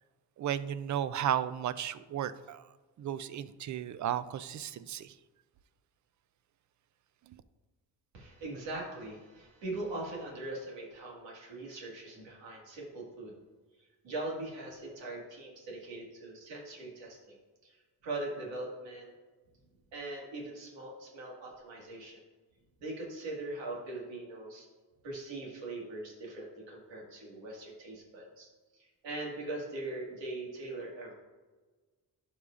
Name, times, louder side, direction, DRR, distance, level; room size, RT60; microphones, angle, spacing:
voice 1, 0.4-2.6 3.0-5.1, right 10 dB, 45° right, 14 dB, 0.5 m, -34 dB
voice 2, 8.1-13.3 14.0-17.4 17.6-19.1 19.9-22.2 22.8-24.7 25.0-31.1, right 2 dB, 90° right, -3 dB, 2.0 m, -41 dB
12.0 x 4.9 x 2.5 m, 1.3 s
cardioid pair, 65°, 43 cm